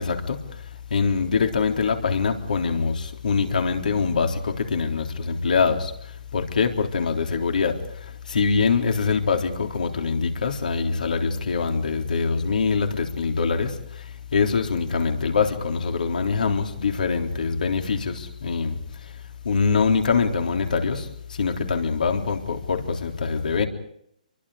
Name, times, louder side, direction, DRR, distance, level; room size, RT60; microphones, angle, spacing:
voice 1, 0.0-23.7, left 5 dB, 75° left, 4 dB, 3.7 m, -24 dB
27.5 x 23.5 x 5.1 m, 0.70 s
hypercardioid pair, 155°, 5 cm